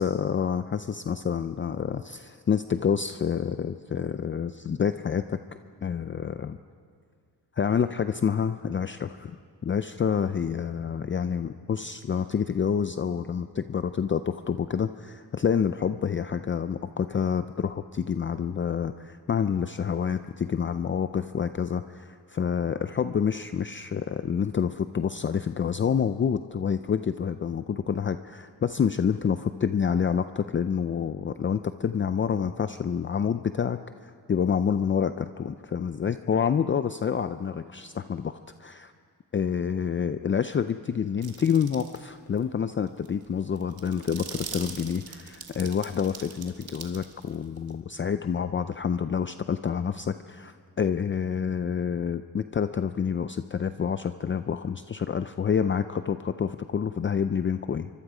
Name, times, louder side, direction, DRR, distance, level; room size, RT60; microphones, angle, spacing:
voice 1, 0.0-5.4 5.8-6.6 7.6-9.4 9.6-38.9 39.3-57.9, left 7 dB, 30° left, 10 dB, 0.5 m, -28 dB
sound 1, 41.2-42.0 42.4-42.5 42.9-47.7, right 6 dB, 65° right, 2.3 m, -42 dB
26.0 x 23.5 x 5.0 m, 2.2 s
cardioid pair, 110°, 39 cm